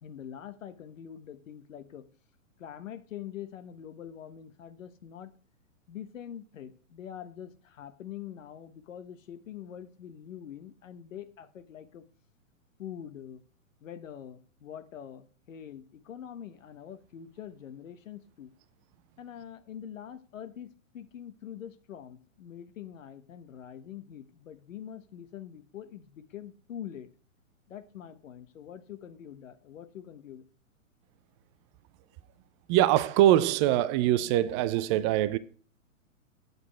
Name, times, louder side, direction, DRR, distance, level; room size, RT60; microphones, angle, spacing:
voice 1, 0.0-2.1 2.6-5.3 5.9-12.1 12.8-13.4 13.8-18.5 19.2-27.1 27.7-30.4, left 9 dB, 65° left, 1.1 m, -44 dB
voice 2, 32.7-35.4, right 13 dB, 20° right, 0.4 m, -23 dB
8.2 x 8.1 x 4.5 m
hypercardioid pair, 120°, 41 cm